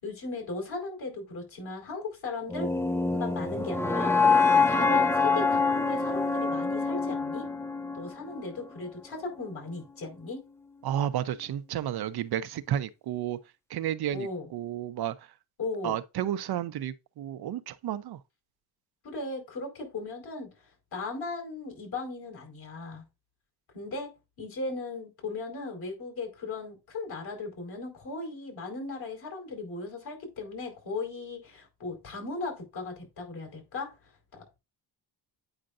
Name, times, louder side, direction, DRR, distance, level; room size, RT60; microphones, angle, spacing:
voice 1, 0.0-2.7 3.1-4.2 4.7-7.5 7.9-10.4 14.1-14.5 15.6-15.9 19.0-20.5 20.9-23.0 23.7-24.1 24.4-33.9 34.3-34.6, left 3 dB, 60° left, 4.5 m, -37 dB
sound 1, 2.5-8.6, left 4 dB, 5° left, 0.4 m, -25 dB
voice 2, 10.8-13.4 13.7-15.2 15.8-18.2, right 11 dB, 60° right, 0.7 m, -32 dB
8.8 x 5.1 x 2.5 m
cardioid pair, 85°, 44 cm